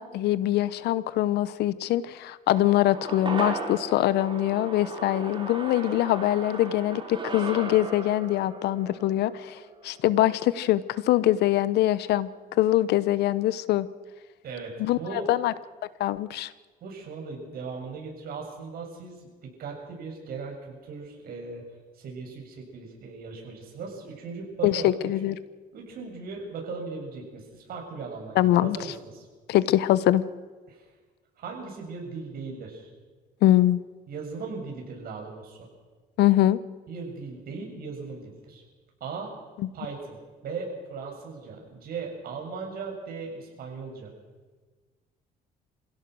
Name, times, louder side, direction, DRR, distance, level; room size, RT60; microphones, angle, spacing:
voice 1, 0.0-12.3 12.6-13.9 14.8-15.5 16.0-16.5 24.6-25.4 28.4-28.8 29.5-30.2 33.4-33.8 36.2-36.6, left 14 dB, 75° left, 17 dB, 0.9 m, -23 dB
sound 1, 2.5-11.0 11.3-11.4, right 3 dB, 30° right, 3.3 m, -37 dB
voice 2, 14.4-15.3 16.8-21.6 22.0-25.1 25.7-29.3 30.7-30.8 31.4-32.9 34.1-35.6 36.9-38.6 39.0-39.3 39.7-40.2 40.4-44.1, right 4 dB, 60° right, 1 dB, 6.9 m, -38 dB
28.0 x 16.5 x 6.3 m, 1.4 s
cardioid pair, 110°, 17 cm